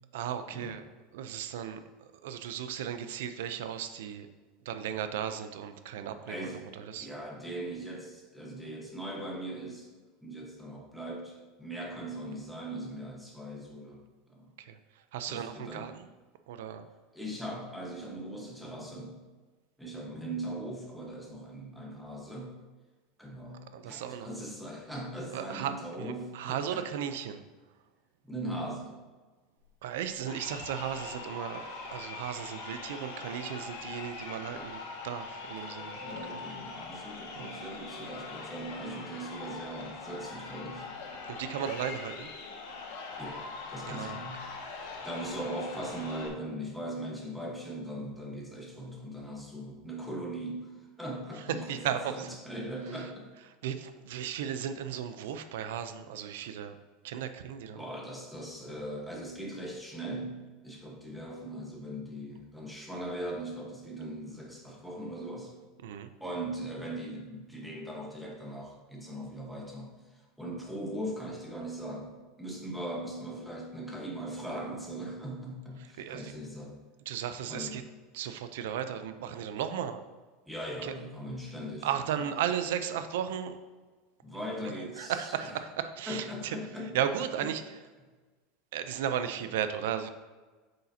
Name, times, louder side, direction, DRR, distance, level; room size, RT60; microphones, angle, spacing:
voice 1, 0.1-0.8 1.1-4.3 4.7-6.5 6.7-7.1 14.6-14.8 15.1-16.1 16.5-16.9 23.7-24.3 25.3-25.7 26.0-27.4 29.8-31.6 31.9-36.0 37.3-37.5 41.3-42.3 43.9-44.2 51.7-52.3 53.6-56.8 57.0-57.8 65.8-66.1 76.0-76.3 77.1-77.8 78.1-80.0 80.8-80.9 81.8-83.6 85.0-86.6 86.9-87.6 88.7-90.1, right 9 dB, 85° right, 10 dB, 0.5 m, -35 dB
voice 2, 6.2-6.6 7.0-9.9 10.2-14.0 14.3-14.5 15.3-15.9 17.1-19.2 19.8-22.6 23.2-26.8 28.2-29.0 36.0-40.9 43.2-43.4 43.7-44.4 44.7-53.3 57.8-60.3 60.6-65.5 66.2-72.1 72.4-76.7 77.5-77.8 80.5-82.3 84.2-85.6 86.1-87.5, right 1 dB, ahead, -3 dB, 1.2 m, -40 dB
Crowd, 30.2-46.3, left 4 dB, 80° left, 1.6 m, -42 dB
8.4 x 6.5 x 2.8 m, 1.3 s
supercardioid pair, 170°, 0 cm